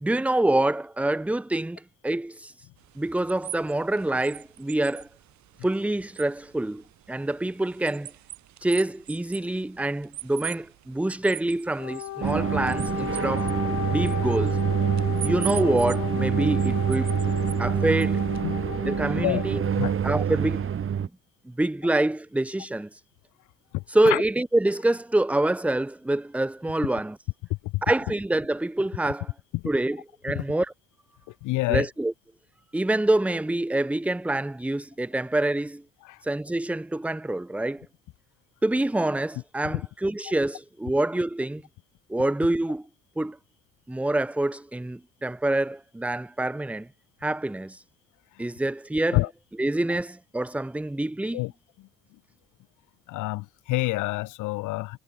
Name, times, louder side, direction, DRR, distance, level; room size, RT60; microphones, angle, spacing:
voice 1, 0.0-2.7 3.0-5.1 5.6-6.8 7.1-8.1 8.6-13.5 13.9-14.6 15.2-17.2 17.6-18.2 18.8-19.6 20.0-20.7 21.0-21.1 21.6-23.0 23.9-27.1 27.8-29.3 29.7-30.7 31.7-32.1 32.7-35.8 36.2-37.8 38.6-41.6 42.1-42.8 43.2-43.4 43.9-46.9 47.2-47.8 48.4-49.2 49.6-51.4, right 1 dB, 5° right, 0.5 m, -26 dB
sound 1, 2.8-18.4, right 14 dB, 65° right, 6.7 m, -43 dB
Wind instrument woodwind instrument, 11.7-19.7, left 14 dB, 55° left, 1.1 m, -34 dB
sound 2, 12.2-21.1, right 8 dB, 45° right, 2.8 m, -26 dB
voice 2, 23.7-24.2 27.6-27.8 29.5-29.6 30.3-30.4 31.4-31.9 36.0-36.2 49.1-49.3 49.9-50.0 51.3-51.5 51.8-51.9 53.1-55.0, left 20 dB, 75° left, 3.6 m, -27 dB
supercardioid pair, 75°, 31 cm